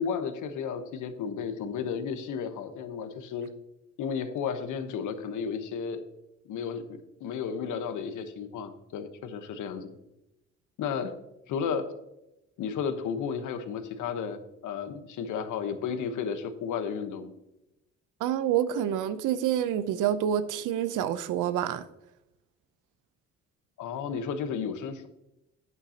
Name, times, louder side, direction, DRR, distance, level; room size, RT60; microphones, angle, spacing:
voice 1, 0.0-3.5 4.0-6.0 6.5-6.9 7.2-9.9 10.8-11.1 11.5-11.9 12.6-17.3 23.8-25.1, left 6 dB, 80° left, 1.1 m, -33 dB
voice 2, 18.2-21.9, right 10 dB, 90° right, 0.7 m, -27 dB
11.0 x 9.1 x 2.8 m
cardioid pair, 90°, 30 cm